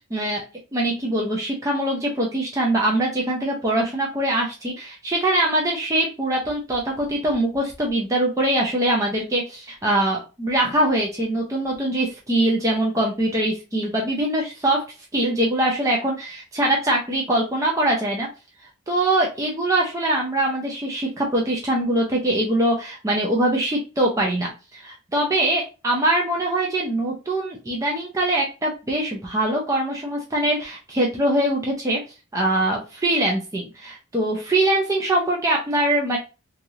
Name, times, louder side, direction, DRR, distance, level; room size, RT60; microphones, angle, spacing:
voice 1, 0.1-0.4 0.7-14.8 15.1-18.3 18.9-32.0 32.3-36.2, right 1 dB, 15° right, -2 dB, 0.5 m, -23 dB
3.2 x 2.4 x 2.7 m, 0.31 s
head